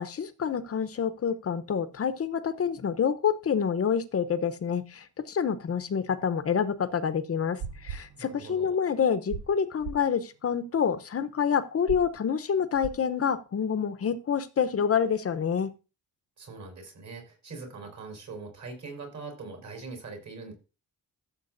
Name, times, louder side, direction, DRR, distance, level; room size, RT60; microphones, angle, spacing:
voice 1, 0.0-15.7, left 7 dB, 40° left, 13 dB, 0.7 m, -27 dB
sound 1, 7.4-8.8 9.1-9.5 9.8-10.1 11.9-12.1 12.7-13.1, right 6 dB, 75° right, 0.7 m, -39 dB
voice 2, 8.2-8.8 16.4-20.5, right 4 dB, 45° right, 4 dB, 4.2 m, -42 dB
14.0 x 7.4 x 2.6 m, 0.32 s
wide cardioid pair, 175°, 38 cm